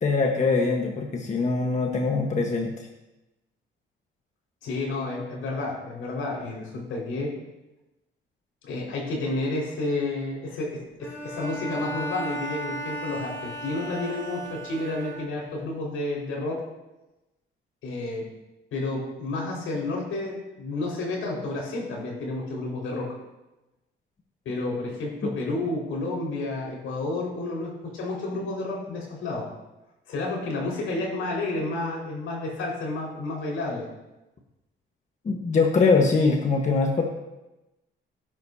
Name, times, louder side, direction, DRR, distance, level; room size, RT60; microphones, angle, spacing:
voice 1, 0.0-2.9 35.2-37.0, left 4 dB, 35° left, 1 dB, 1.4 m, -22 dB
voice 2, 4.6-7.3 8.6-16.6 17.8-18.3 18.7-23.1 24.4-29.5 30.1-33.9, left 2 dB, 85° left, -2 dB, 5.1 m, -30 dB
Bowed string instrument, 11.0-15.6, right 1 dB, 15° left, 3.5 m, -35 dB
17.0 x 10.5 x 2.8 m, 0.99 s
cardioid pair, 115°, 21 cm